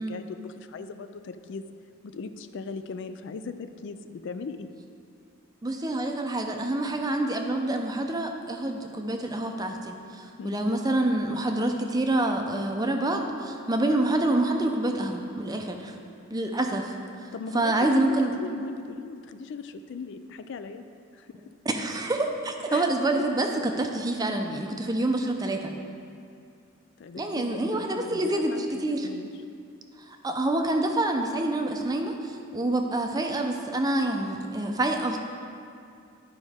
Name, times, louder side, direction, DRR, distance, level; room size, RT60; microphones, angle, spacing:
voice 1, 0.0-1.7 2.0-4.7 10.4-10.7 17.3-20.8 21.1-21.3 22.7-22.9 23.2-23.3 27.0-29.3, left 4 dB, 60° left, 10 dB, 0.3 m, -38 dB
voice 2, 5.6-15.9 16.3-16.9 17.2-17.3 17.5-18.3 21.7-25.7 27.2-29.1 30.1-35.2, right 1 dB, 20° right, 4 dB, 0.5 m, -27 dB
11.5 x 5.2 x 3.5 m, 2.4 s
head